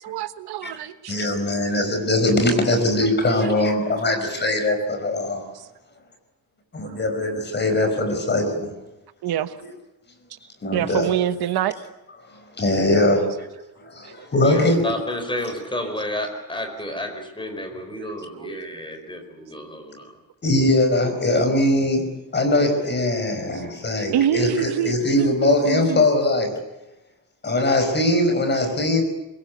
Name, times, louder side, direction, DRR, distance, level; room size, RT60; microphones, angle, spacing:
voice 1, 0.0-1.2 5.5-5.7 6.8-6.9 9.2-9.6 10.7-11.7 14.0-14.3 16.9-17.0 18.0-18.6 23.5-23.6 24.1-26.0, right 10 dB, 90° right, 11 dB, 1.3 m, -26 dB
voice 2, 1.1-5.4 6.7-8.7 10.6-11.1 12.3-13.5 13.9-14.8 20.4-22.1 22.3-26.5 27.4-29.0, left 1 dB, 30° left, 6 dB, 5.3 m, -21 dB
voice 3, 14.4-20.1, left 1 dB, 15° left, 5 dB, 4.8 m, -31 dB
24.5 x 22.0 x 8.4 m, 0.98 s
cardioid pair, 155°, 37 cm